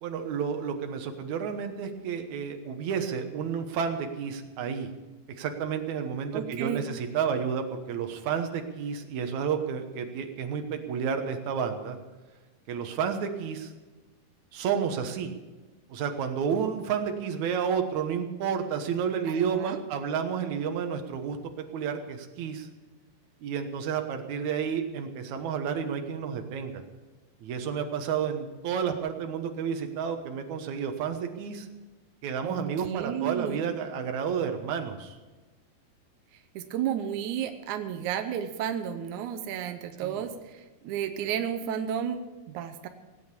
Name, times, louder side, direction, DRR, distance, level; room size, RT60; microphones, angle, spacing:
voice 1, 0.0-4.9 5.4-12.0 12.7-13.7 14.5-15.3 15.9-22.7 23.4-26.8 27.4-31.7 32.2-35.2 40.0-40.2, right 7 dB, 65° right, 5 dB, 2.1 m, -31 dB
voice 2, 6.3-6.8 19.3-19.8 32.4-33.7 36.5-42.9, right 9 dB, 85° right, 8 dB, 1.7 m, -32 dB
18.0 x 8.9 x 6.8 m, 1.2 s
omnidirectional pair, 4.5 m